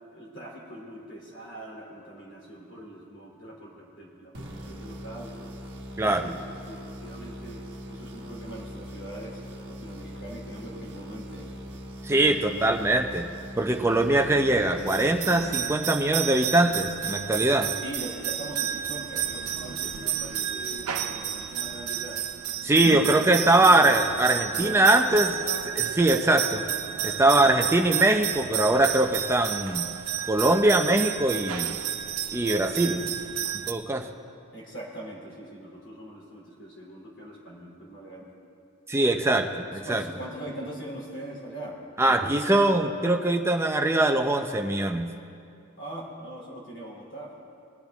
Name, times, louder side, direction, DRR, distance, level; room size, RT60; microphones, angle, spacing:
voice 1, 0.1-5.5 6.0-6.3 6.7-7.6 7.9-9.4 9.8-11.5 17.8-22.2 23.1-23.9 24.5-24.8 34.5-38.3 39.8-41.8 42.0-42.4 45.8-47.5, right 1 dB, 60° left, -2 dB, 2.9 m, -41 dB
sound 1, 4.3-16.1, equal, 55° right, 1.2 m, -41 dB
voice 2, 6.0-6.4 12.0-13.3 13.6-17.7 22.6-25.4 25.7-26.6 27.0-29.9 30.3-31.8 32.3-33.1 33.7-34.1 38.9-40.0 42.0-45.1, right 2 dB, 10° right, 4 dB, 0.6 m, -22 dB
sound 2, 14.8-33.7, right 10 dB, 85° right, 0.6 m, -31 dB
19.0 x 10.5 x 3.5 m, 2.5 s
head